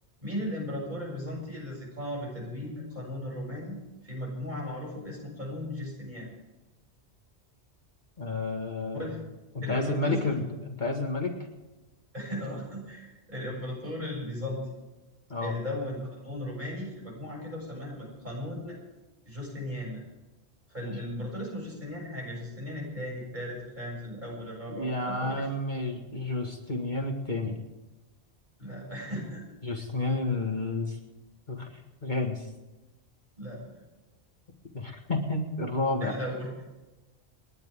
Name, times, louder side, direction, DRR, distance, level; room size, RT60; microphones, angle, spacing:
voice 1, 0.2-3.8 4.0-6.3 8.9-9.2 9.6-10.3 12.1-14.6 15.4-18.8 19.2-20.0 20.7-25.5 28.6-29.4 33.4-33.8 36.0-36.5, left 1 dB, 45° right, -3 dB, 7.5 m, -36 dB
voice 2, 8.2-9.1 9.5-10.5 10.8-11.4 15.3-15.5 20.8-20.9 24.7-27.6 29.6-31.0 31.5-31.7 32.0-32.5 34.7-36.1, left 2 dB, 45° left, 2 dB, 1.9 m, -30 dB
29.0 x 10.5 x 3.7 m, 1.1 s
omnidirectional pair, 1.1 m